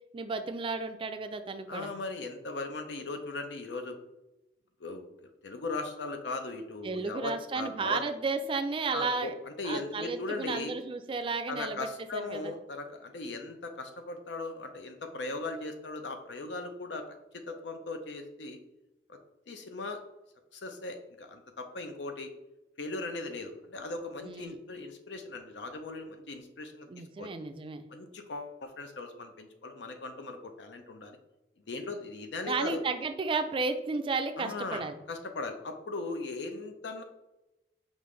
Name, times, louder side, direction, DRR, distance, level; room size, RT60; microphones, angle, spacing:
voice 1, 0.1-1.9 6.8-9.3 9.6-12.5 24.2-24.6 26.9-27.8 32.5-35.0, right 4 dB, 30° right, 8 dB, 0.3 m, -33 dB
voice 2, 1.7-4.0 4.8-5.1 5.4-8.0 8.9-10.7 11.5-17.0 17.3-18.6 19.1-19.2 19.5-20.0 20.5-22.3 22.8-26.9 27.2-27.3 27.9-31.2 31.7-32.8 34.4-37.0, left 3 dB, 85° left, 6 dB, 0.6 m, -38 dB
5.3 x 2.5 x 3.2 m, 0.99 s
head